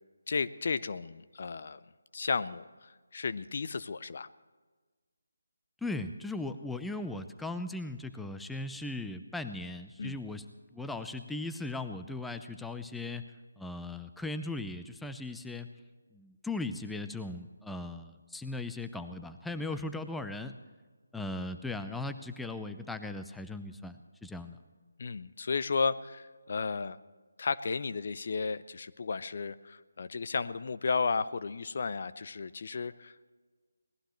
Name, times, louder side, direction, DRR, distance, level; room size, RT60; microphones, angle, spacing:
voice 1, 0.3-1.8 2.1-4.3 10.0-10.2 25.0-27.0 27.4-33.3, left 4 dB, 50° left, 13 dB, 0.6 m, -33 dB
voice 2, 5.8-10.4 10.7-13.2 13.6-15.7 16.1-20.5 21.1-24.6, left 2 dB, 5° left, 8 dB, 0.6 m, -38 dB
24.0 x 18.5 x 3.1 m, 1.4 s
figure-of-eight pair, 155°, 0 cm